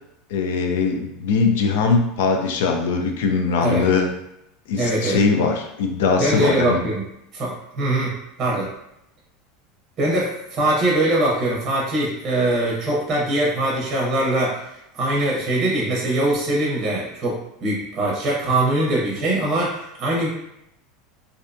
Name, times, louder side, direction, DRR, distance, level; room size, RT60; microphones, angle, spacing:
voice 1, 0.3-4.1 4.7-6.8, left 4 dB, 80° left, 3 dB, 0.4 m, -21 dB
voice 2, 4.8-5.2 6.2-7.0 7.3-8.7 10.0-14.6 14.9-20.3, right 1 dB, 30° right, -4 dB, 0.7 m, -22 dB
2.6 x 2.1 x 2.5 m, 0.82 s
supercardioid pair, 155°, 0 cm